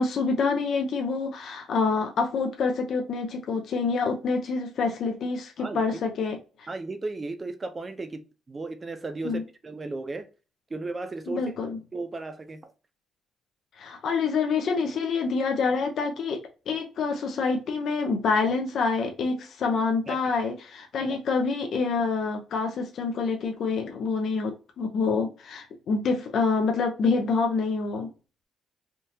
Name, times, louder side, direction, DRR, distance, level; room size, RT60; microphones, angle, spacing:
voice 1, 0.0-6.7 9.2-9.4 11.3-11.8 13.8-28.1, left 4 dB, 65° left, 0.6 m, -27 dB
voice 2, 6.7-8.2 8.5-10.3 10.7-11.5 11.9-12.7 20.1-20.2 21.0-21.2, right 3 dB, 30° right, 0.7 m, -35 dB
3.6 x 2.5 x 2.8 m
cardioid pair, 90°, 0 cm